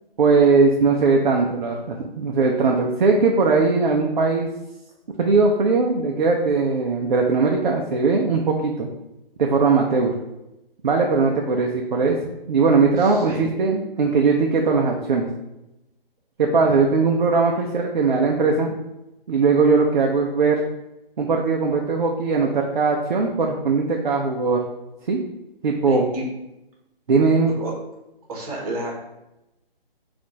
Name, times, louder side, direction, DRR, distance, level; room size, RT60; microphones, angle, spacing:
voice 1, 0.2-4.5 5.2-8.9 9.4-10.1 10.8-12.2 12.5-15.3 16.4-18.8 19.3-20.7 21.2-24.6 25.1-25.2 25.6-26.1 27.1-27.5, right 4 dB, 55° right, 0 dB, 0.6 m, -19 dB
voice 2, 13.0-13.4 25.9-26.2 27.5-27.7 28.3-28.9, right 2 dB, 40° right, -2 dB, 1.3 m, -31 dB
4.2 x 2.5 x 4.0 m, 0.92 s
hypercardioid pair, 165°, 29 cm